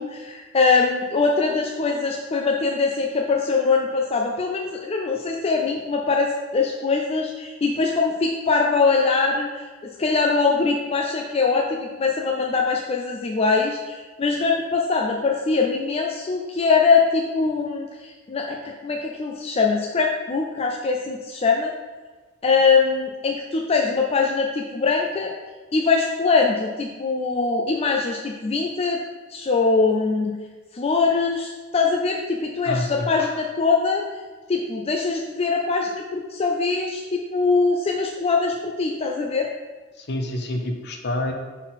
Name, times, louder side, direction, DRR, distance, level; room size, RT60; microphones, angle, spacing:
voice 1, 0.0-21.7 22.4-25.3 25.7-29.0 29.3-30.3 30.7-34.0 34.5-39.5, left 4 dB, 30° left, 0 dB, 0.4 m, -22 dB
voice 2, 32.6-33.1 40.0-41.3, left 1 dB, 55° left, 3 dB, 0.8 m, -27 dB
5.8 x 4.0 x 4.1 m, 1.3 s
head